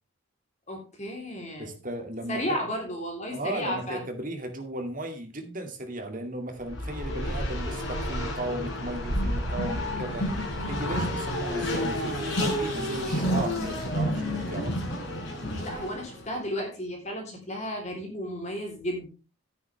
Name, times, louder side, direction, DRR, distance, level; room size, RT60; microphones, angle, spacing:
voice 1, 0.7-1.7 2.3-4.0 15.6-19.1, equal, 35° left, 1 dB, 3.6 m, -33 dB
voice 2, 1.6-2.6 3.3-14.9, right 1 dB, 40° right, 5 dB, 2.3 m, -36 dB
Race car auto racing, 6.6-16.3, equal, 55° left, 4.7 m, -30 dB
12.0 x 9.6 x 3.4 m, 0.32 s
head